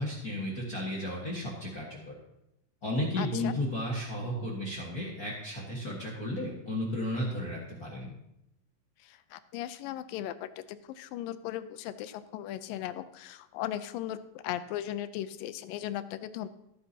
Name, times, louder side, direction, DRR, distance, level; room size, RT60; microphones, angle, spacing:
voice 1, 0.0-2.1 2.8-8.1, left 1 dB, 45° left, -4 dB, 1.2 m, -33 dB
voice 2, 3.2-3.5 9.0-16.5, left 12 dB, 80° left, 12 dB, 2.2 m, -37 dB
15.5 x 9.6 x 2.8 m, 0.85 s
omnidirectional pair, 4.1 m